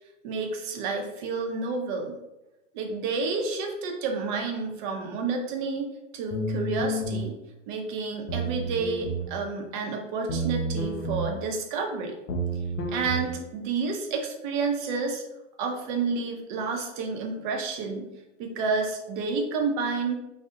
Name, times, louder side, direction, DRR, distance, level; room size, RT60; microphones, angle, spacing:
voice 1, 0.2-2.1 2.7-5.9 6.1-7.3 7.7-12.1 12.9-15.2 15.6-18.1 18.4-20.2, right 4 dB, 40° right, 2 dB, 0.5 m, -30 dB
sound 1, 6.3-7.3 8.3-9.3 10.3-11.3 12.3-13.3, right 2 dB, 75° left, 0.6 m, -30 dB
2.3 x 2.0 x 2.6 m, 0.94 s
hypercardioid pair, 120°, 38 cm